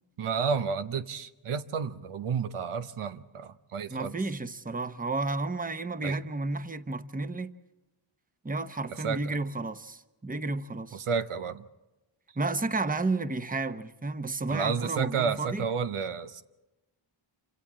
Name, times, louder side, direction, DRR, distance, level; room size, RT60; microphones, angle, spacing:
voice 1, 0.2-4.1 6.0-6.2 8.9-9.2 10.9-11.6 14.5-16.4, right 6 dB, 85° right, 0.9 m, -31 dB
voice 2, 3.9-7.5 8.4-11.0 12.4-15.6, right 3 dB, 15° right, 0.9 m, -32 dB
28.0 x 26.0 x 3.7 m
cardioid pair, 60°, 49 cm